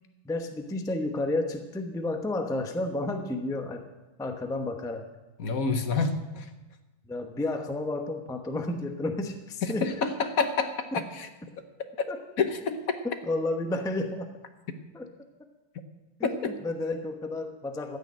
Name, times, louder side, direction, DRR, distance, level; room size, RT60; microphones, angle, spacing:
voice 1, 0.2-3.8 4.2-5.1 7.0-10.0 11.0-11.1 12.1-12.2 13.2-14.3 14.9-15.1 16.2-18.0, left 2 dB, 5° left, 5 dB, 0.3 m, -31 dB
voice 2, 5.4-6.5 9.8-10.7 11.2-11.3 12.4-12.8 16.4-16.5, left 4 dB, 55° left, 8 dB, 1.2 m, -27 dB
15.0 x 6.7 x 8.7 m, 1.1 s
omnidirectional pair, 2.2 m